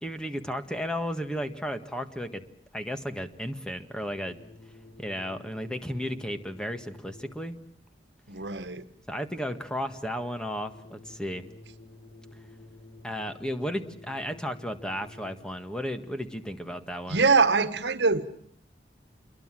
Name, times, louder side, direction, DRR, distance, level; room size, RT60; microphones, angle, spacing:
voice 1, 0.0-2.4 2.7-4.4 5.0-7.6 9.1-11.5 13.0-17.2, equal, 5° left, 1.7 m, -34 dB
sound 1, 4.2-7.7 10.6-15.7, left 2 dB, 30° left, 2.9 m, -51 dB
voice 2, 8.3-8.8 17.1-18.3, right 4 dB, 75° right, 1.4 m, -23 dB
28.0 x 23.0 x 7.6 m
head